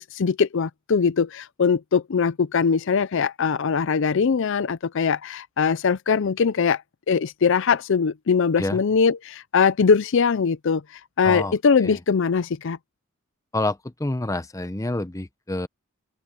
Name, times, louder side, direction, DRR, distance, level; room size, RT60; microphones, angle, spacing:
voice 1, 0.0-6.8 7.1-12.8, left 5 dB, 60° left, 0.5 m, -21 dB
voice 2, 13.5-15.7, left 2 dB, 15° left, 0.7 m, -28 dB
open air
head